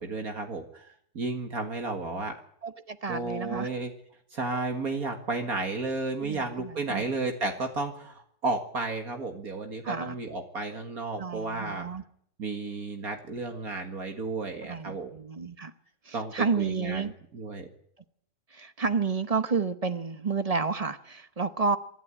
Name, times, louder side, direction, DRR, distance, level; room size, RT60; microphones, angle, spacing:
voice 1, 0.0-2.4 3.1-3.9 4.3-11.9 12.4-15.1 16.1-17.7, right 3 dB, 55° right, 2.2 m, -33 dB
voice 2, 2.6-3.7 6.2-7.1 9.8-10.1 11.2-12.0 14.7-15.7 16.1-17.1 18.5-21.8, right 4 dB, 35° right, 0.7 m, -30 dB
26.0 x 11.5 x 9.9 m
omnidirectional pair, 1.8 m